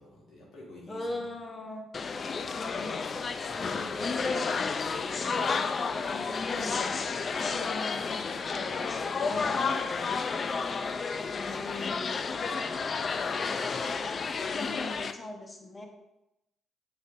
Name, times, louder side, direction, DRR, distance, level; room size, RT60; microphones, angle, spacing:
voice 1, 0.0-1.3 2.4-7.2 8.0-8.6 9.2-10.8 11.2-11.7 12.3-14.1, equal, 75° left, -4 dB, 2.7 m, -51 dB
voice 2, 0.9-1.9 2.5-3.1 6.1-7.0 7.4-8.2 8.5-9.8 11.5-12.3 14.5-15.9, left 2 dB, 25° left, 2 dB, 1.3 m, -40 dB
sound 1, 1.9-15.1, left 5 dB, 45° left, 0.4 m, -31 dB
7.4 x 7.1 x 2.6 m, 0.90 s
cardioid pair, 90°, 0 cm